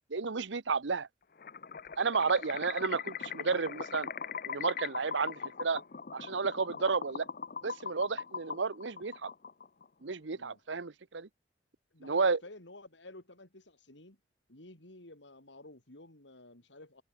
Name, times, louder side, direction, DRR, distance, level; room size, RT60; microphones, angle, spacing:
voice 1, 0.1-1.1 2.0-4.1 4.5-5.8 6.1-7.2 7.6-9.3 10.0-11.3 12.0-12.4, right 4 dB, 85° right, 0.9 m, -32 dB
sound 1, 1.4-9.9, left 6 dB, 50° left, 0.7 m, -41 dB
voice 2, 11.9-14.2 14.5-17.0, left 2 dB, 80° left, 4.3 m, -52 dB
head